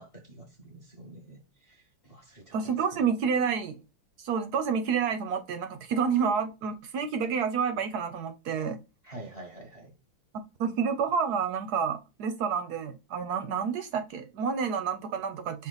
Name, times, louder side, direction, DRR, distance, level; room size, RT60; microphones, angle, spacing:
voice 1, 0.0-3.1 9.0-9.9, right 1 dB, 25° left, 0.8 m, -47 dB
voice 2, 2.5-3.8 4.2-8.8 10.6-15.7, right 6 dB, 70° right, 1.0 m, -29 dB
5.5 x 2.4 x 3.8 m
omnidirectional pair, 2.1 m